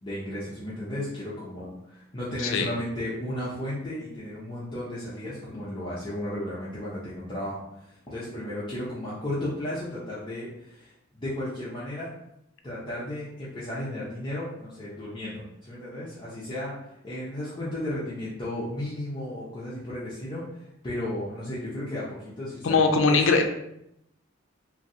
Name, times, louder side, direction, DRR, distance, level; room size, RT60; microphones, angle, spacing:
voice 1, 0.0-12.1 12.6-23.4, left 1 dB, 25° left, -9 dB, 0.6 m, -34 dB
voice 2, 2.4-2.7 22.6-23.5, left 4 dB, 70° left, 4 dB, 0.4 m, -21 dB
3.0 x 2.6 x 2.6 m, 0.81 s
head